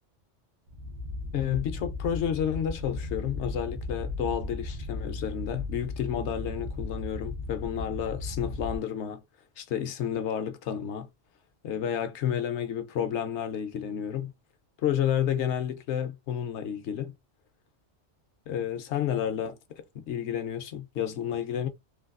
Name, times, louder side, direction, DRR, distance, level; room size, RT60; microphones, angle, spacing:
sound 1, 0.7-8.8, left 3 dB, 80° right, 1.1 m, -36 dB
voice 1, 1.3-9.2 9.6-11.1 11.6-14.3 14.8-17.1 18.5-21.7, left 9 dB, 75° left, 0.9 m, -31 dB
3.2 x 2.2 x 2.4 m
omnidirectional pair, 1.2 m